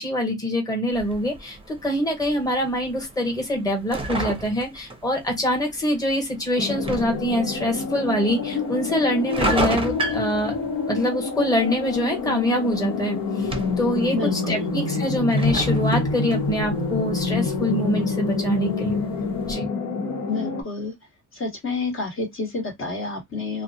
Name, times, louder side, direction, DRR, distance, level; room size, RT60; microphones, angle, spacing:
voice 1, 0.0-10.5 10.9-13.5 13.8-19.0 19.5-19.7, equal, 10° left, 1.1 m, -24 dB
sound 1, 0.9-19.5, right 2 dB, 20° right, 0.6 m, -34 dB
sound 2, 6.6-20.6, left 4 dB, 90° left, 0.9 m, -27 dB
voice 2, 14.1-14.7 20.3-20.9 21.3-23.6, left 3 dB, 45° left, 1.1 m, -29 dB
2.4 x 2.1 x 2.6 m
cardioid pair, 90°, 30 cm